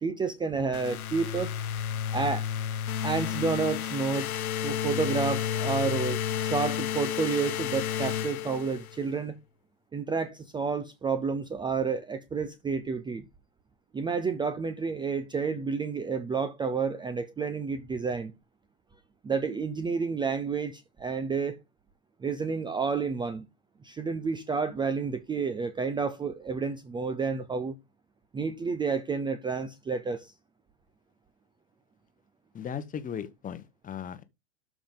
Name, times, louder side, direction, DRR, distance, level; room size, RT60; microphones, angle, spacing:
voice 1, 0.0-1.6 2.1-2.5 3.0-9.3 9.9-13.2 13.9-18.3 19.2-21.6 22.2-23.5 23.8-27.8 28.3-30.3, right 5 dB, 10° right, 0.7 m, -30 dB
sound 1, 0.7-9.0, left 9 dB, 75° left, 0.9 m, -31 dB
voice 2, 32.5-34.2, left 8 dB, 20° left, 1.1 m, -37 dB
12.5 x 5.1 x 3.8 m
hypercardioid pair, 110°, 43 cm